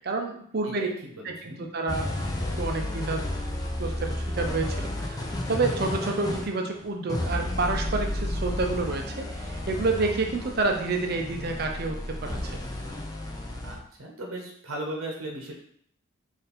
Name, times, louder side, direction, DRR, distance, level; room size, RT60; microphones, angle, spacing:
voice 1, 0.0-0.9 1.2-2.1 2.6-3.2 3.8-12.5, right 3 dB, 45° right, 3 dB, 0.5 m, -29 dB
voice 2, 0.6-1.7 13.6-15.5, right 1 dB, 75° right, 0 dB, 0.8 m, -37 dB
sound 1, 1.9-13.8, left 1 dB, 20° left, 0.5 m, -32 dB
4.0 x 2.6 x 4.1 m, 0.65 s
head